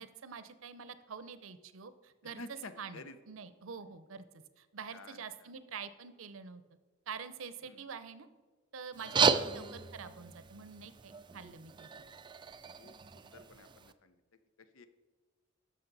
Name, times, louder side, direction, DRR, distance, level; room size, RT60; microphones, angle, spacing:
voice 1, 0.0-6.6 7.1-8.3 8.7-11.9, right 6 dB, 75° right, 13 dB, 0.6 m, -46 dB
voice 2, 2.4-3.1 4.9-5.2 7.6-7.8 9.3-9.6 12.8-14.2 14.6-14.9, left 3 dB, 80° left, 11 dB, 0.7 m, -50 dB
sound 1, 8.9-13.9, right 6 dB, 25° right, 0.3 m, -34 dB
11.5 x 6.3 x 4.0 m, 1.4 s
head